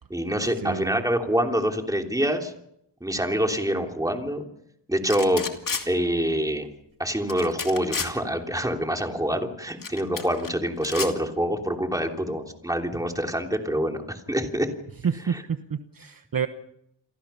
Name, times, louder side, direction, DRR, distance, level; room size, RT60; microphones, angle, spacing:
voice 1, 0.1-2.5 3.0-4.4 4.9-5.4 5.8-6.7 7.0-14.7, equal, 10° right, 3 dB, 3.1 m, -26 dB
voice 2, 0.6-1.0 15.0-16.5, right 7 dB, 50° right, 8 dB, 1.2 m, -29 dB
sound 1, 5.1-5.9 7.3-8.1 9.8-10.5 10.8-11.1, left 5 dB, 45° left, 2.7 m, -31 dB
29.5 x 23.0 x 5.7 m, 0.75 s
wide cardioid pair, 130°, 44 cm